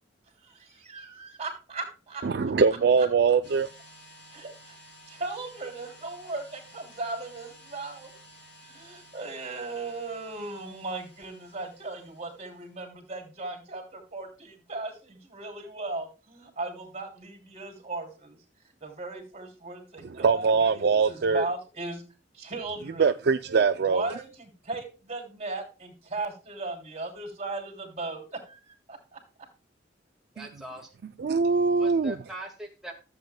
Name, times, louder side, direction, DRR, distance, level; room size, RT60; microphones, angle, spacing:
voice 1, 0.4-2.2 4.3-4.8 5.1-8.1 8.6-18.4 18.8-20.5 20.7-22.0 22.3-23.1 23.8-29.2, right 3 dB, 35° right, 3.1 m, -37 dB
voice 2, 2.2-3.7 20.2-21.5 23.0-24.1 30.4-30.5 31.2-32.1, right 5 dB, 60° right, 0.4 m, -22 dB
sound 1, 3.4-12.8, equal, 75° left, 3.4 m, -53 dB
voice 3, 30.3-30.9 31.8-32.9, right 1 dB, ahead, 1.9 m, -41 dB
14.0 x 7.9 x 2.2 m
head